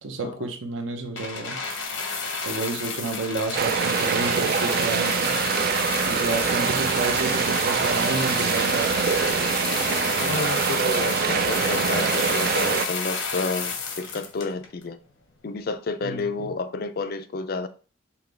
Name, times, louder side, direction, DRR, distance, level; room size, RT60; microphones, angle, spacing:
voice 1, 0.0-1.7 2.4-5.4 6.0-8.9 16.0-16.5, right 3 dB, 80° right, 0.8 m, -31 dB
sound 1, 1.2-14.8 15.6-15.7, left 4 dB, 80° left, 1.0 m, -30 dB
sound 2, 3.5-12.9, right 7 dB, 50° right, 0.3 m, -24 dB
voice 2, 10.2-15.0 15.4-17.7, left 4 dB, 50° left, 0.4 m, -30 dB
5.7 x 2.3 x 3.3 m
head